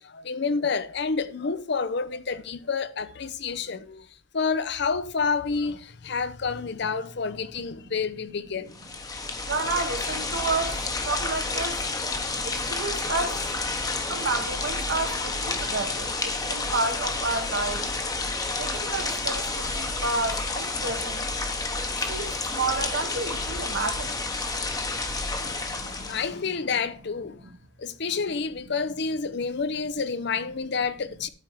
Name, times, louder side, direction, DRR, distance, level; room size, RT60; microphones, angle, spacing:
voice 1, 0.0-4.1 4.3-8.7 25.1-27.4 27.8-31.3, left 5 dB, 60° left, 0.6 m, -29 dB
sound 1, 8.7-26.3, left 3 dB, 20° left, 0.9 m, -30 dB
voice 2, 9.5-11.8 12.4-13.4 14.1-17.9 18.5-21.3 22.1-24.1 25.7-26.2, right 3 dB, 65° right, 1.3 m, -31 dB
12.5 x 4.4 x 4.7 m
head